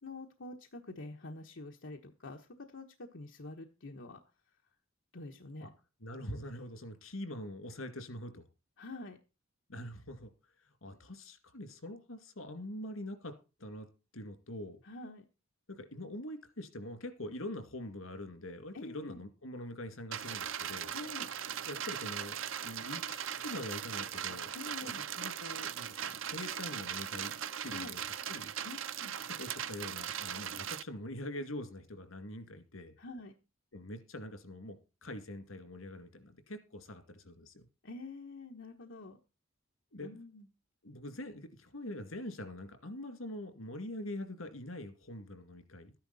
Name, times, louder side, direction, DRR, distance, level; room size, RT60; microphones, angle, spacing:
voice 1, 0.0-4.2 5.1-5.7 8.8-9.2 14.8-15.2 18.7-19.2 20.9-21.3 24.5-25.0 27.6-27.9 28.6-29.2 33.0-33.3 37.8-39.2 40.0-40.5, left 2 dB, 65° left, 1.2 m, -46 dB
voice 2, 6.0-8.4 9.7-10.3 10.6-13.9 14.1-14.8 15.7-20.9 21.7-22.4 22.6-24.6 24.8-24.9 25.2-27.3 27.6-28.5 29.3-33.0 33.7-37.7 39.9-40.2 40.8-45.9, left 1 dB, 90° left, 2.4 m, -44 dB
sound 1, 20.1-30.8, right 9 dB, 70° right, 0.7 m, -39 dB
13.0 x 10.5 x 4.1 m
head